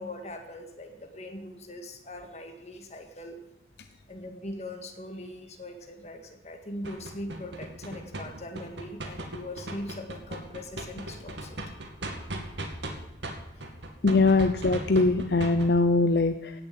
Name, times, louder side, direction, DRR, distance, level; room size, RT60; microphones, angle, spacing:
voice 1, 0.0-3.4 4.1-11.6 13.6-13.7 14.4-14.5, left 1 dB, 40° left, 5 dB, 1.8 m, -41 dB
sound 1, 6.8-12.9 13.2-15.7, right 1 dB, 85° right, 2.2 m, -37 dB
voice 2, 14.0-16.5, left 3 dB, 65° left, 8 dB, 0.7 m, -22 dB
16.5 x 7.0 x 8.4 m, 0.85 s
head